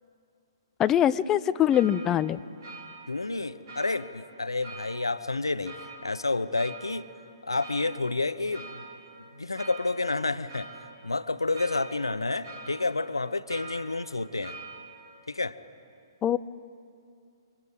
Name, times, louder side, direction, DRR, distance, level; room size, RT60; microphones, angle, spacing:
voice 1, 0.8-2.4 16.2-16.4, left 10 dB, 20° left, 15 dB, 0.5 m, -23 dB
sound 1, 1.6-15.4, right 2 dB, 55° right, 3.4 m, -46 dB
voice 2, 3.1-5.7 6.0-7.1 7.4-8.8 9.3-10.7 11.0-14.6 15.3-15.6, left 3 dB, 80° left, 13 dB, 0.9 m, -30 dB
28.5 x 25.0 x 4.9 m, 2.3 s
figure-of-eight pair, 120°, 2 cm